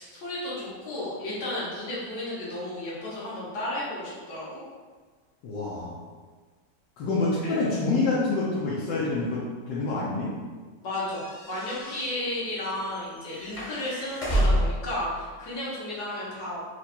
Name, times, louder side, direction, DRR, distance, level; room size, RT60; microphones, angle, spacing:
voice 1, 0.0-4.6 7.4-7.5 10.8-16.7, left 1 dB, 60° left, -8 dB, 1.9 m, -33 dB
voice 2, 5.4-6.0 7.0-10.3, left 3 dB, 75° left, -7 dB, 1.4 m, -27 dB
sound 1, 11.1-14.9, equal, 35° left, 0.5 m, -29 dB
4.7 x 2.5 x 4.2 m, 1.5 s
omnidirectional pair, 2.0 m